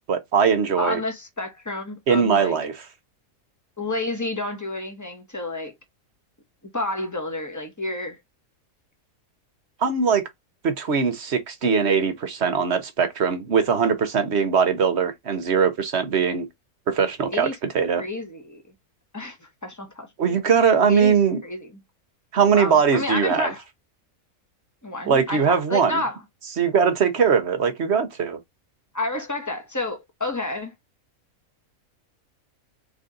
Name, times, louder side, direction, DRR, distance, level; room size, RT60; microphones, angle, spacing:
voice 1, 0.1-1.0 2.1-2.8 9.8-10.2 10.6-16.5 16.9-17.5 17.7-18.0 20.2-21.4 22.3-23.5 25.0-26.0 26.6-28.4, right 6 dB, 55° right, 1.0 m, -21 dB
voice 2, 0.7-2.6 3.8-5.7 6.7-8.2 17.3-17.5 18.0-18.6 19.1-19.4 19.6-20.4 20.9-21.2 21.4-21.8 22.5-23.6 24.8-26.2 28.9-30.7, left 2 dB, 15° left, 1.1 m, -30 dB
4.0 x 3.4 x 3.8 m
omnidirectional pair, 1.5 m